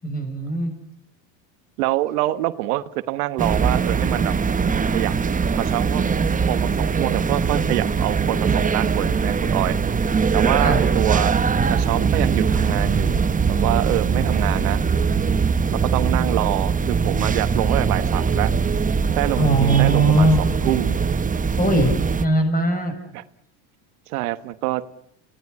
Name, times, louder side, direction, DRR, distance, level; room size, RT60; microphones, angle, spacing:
voice 1, 0.0-0.7 10.6-10.9 19.4-20.4 21.6-21.9 22.2-22.9, right 2 dB, 20° left, 7 dB, 7.0 m, -19 dB
voice 2, 1.8-4.3 4.9-5.1 5.6-6.0 6.5-9.8 10.3-11.4 11.7-13.2 13.5-14.8 15.7-18.5 19.1-21.0 23.1-23.2 24.1-24.8, right 16 dB, 90° right, 14 dB, 1.2 m, -25 dB
sound 1, 3.4-22.3, right 5 dB, 20° right, 1.1 m, -21 dB
28.5 x 17.5 x 9.7 m, 0.74 s
supercardioid pair, 105°, 43 cm